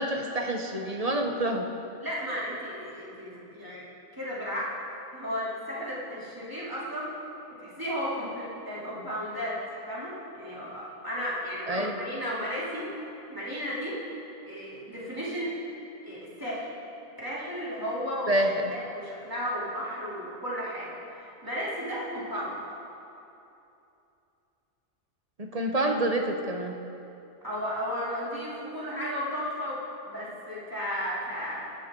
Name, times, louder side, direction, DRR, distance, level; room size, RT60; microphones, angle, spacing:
voice 1, 0.0-1.7 11.7-12.0 18.3-18.7 25.4-26.8, right 1 dB, 35° right, 3 dB, 1.0 m, -27 dB
voice 2, 2.0-3.9 4.1-4.8 5.1-7.1 7.6-9.6 9.9-12.9 13.3-14.0 14.4-15.6 16.0-16.7 17.2-18.3 18.7-22.6 27.4-31.6, equal, 15° right, -9 dB, 3.1 m, -34 dB
22.0 x 11.0 x 3.8 m, 2.8 s
omnidirectional pair, 1.2 m